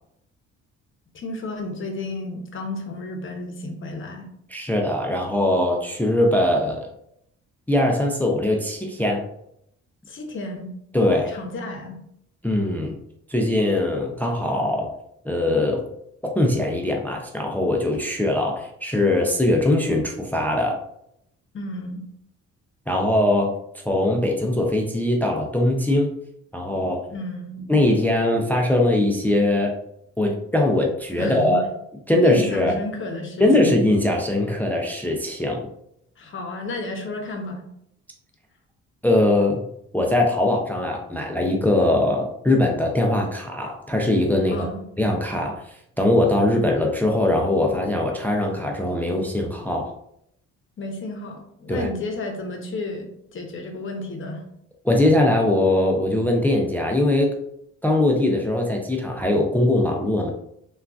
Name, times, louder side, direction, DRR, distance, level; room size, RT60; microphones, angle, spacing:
voice 1, 1.1-4.3 10.1-10.7 11.3-12.0 21.5-22.1 27.1-27.6 31.2-31.6 32.2-33.7 36.2-37.6 44.5-44.8 50.8-54.4, left 2 dB, 40° left, 3 dB, 0.7 m, -32 dB
voice 2, 4.5-6.9 7.7-9.2 10.9-11.3 12.4-12.9 13.3-14.9 15.2-15.8 16.2-20.8 22.9-23.5 23.9-26.1 26.5-27.0 27.7-29.7 30.2-31.6 32.1-32.7 33.4-35.6 39.0-39.6 39.9-44.7 45.0-45.5 46.0-49.9 51.7-51.9 54.8-57.3 57.8-60.3, left 1 dB, 5° left, 1 dB, 0.4 m, -21 dB
3.6 x 2.3 x 2.3 m, 0.75 s
cardioid pair, 90°, 30 cm